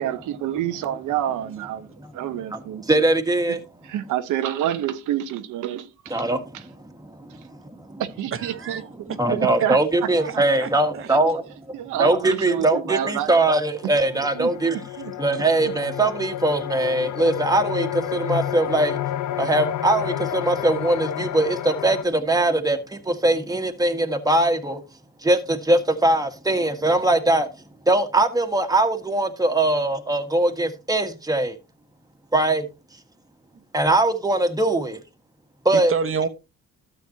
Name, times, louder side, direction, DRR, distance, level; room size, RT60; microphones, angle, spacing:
voice 1, 0.0-2.8 3.8-6.2 6.5-6.6 8.0-8.8 9.3-10.4 11.1-11.2 11.7-13.3 14.3-15.1 15.6-15.7, right 11 dB, 90° right, 0.9 m, -28 dB
voice 2, 2.9-3.6 6.1-6.4 9.2-11.4 12.0-14.8 15.2-19.0 19.4-22.8 23.1-24.8 25.2-27.5 27.9-31.5 32.3-32.6 33.7-35.0 35.7-35.9, right 2 dB, 10° right, 1.6 m, -21 dB
voice 3, 8.3-8.8 9.1-9.2 10.2-10.7 11.0-11.1 35.7-36.3, right 5 dB, 45° right, 1.2 m, -28 dB
sound 1, 13.1-13.2 13.6-22.0, left 12 dB, 70° left, 0.8 m, -30 dB
13.0 x 7.9 x 2.8 m
cardioid pair, 90°, 30 cm